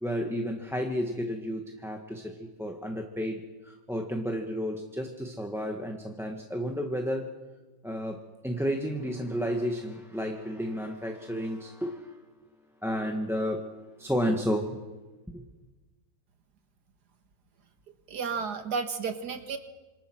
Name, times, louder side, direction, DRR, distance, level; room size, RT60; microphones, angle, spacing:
voice 1, 0.0-7.4 7.8-12.2 12.8-13.6 14.0-14.8 15.3-15.4, equal, ahead, 2 dB, 1.5 m, -32 dB
voice 2, 18.1-19.6, right 5 dB, 60° right, 7 dB, 2.2 m, -32 dB
27.0 x 27.0 x 6.3 m, 1.2 s
omnidirectional pair, 2.0 m